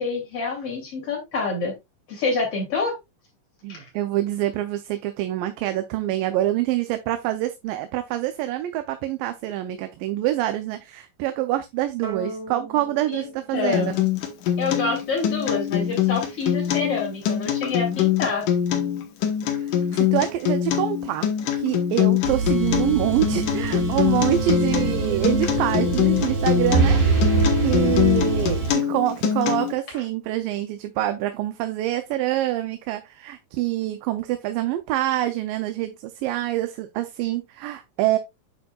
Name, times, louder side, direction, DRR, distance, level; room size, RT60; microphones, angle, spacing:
voice 1, 0.0-1.7 2.1-3.0 3.7-3.9 13.1-13.3 13.5-13.9 14.6-18.5, left 4 dB, 45° left, 3.6 m, -27 dB
voice 2, 3.6-14.1 19.6-19.7 20.0-21.3 21.6-27.1 27.6-38.2, right 14 dB, 85° right, 2.4 m, -26 dB
sound 1, 12.0-14.6, right 3 dB, 35° right, 1.8 m, -38 dB
Acoustic guitar, 13.7-29.7, left 10 dB, 70° left, 2.7 m, -23 dB
sound 2, 22.2-28.7, right 3 dB, 55° right, 3.2 m, -23 dB
9.0 x 5.9 x 2.3 m
omnidirectional pair, 3.9 m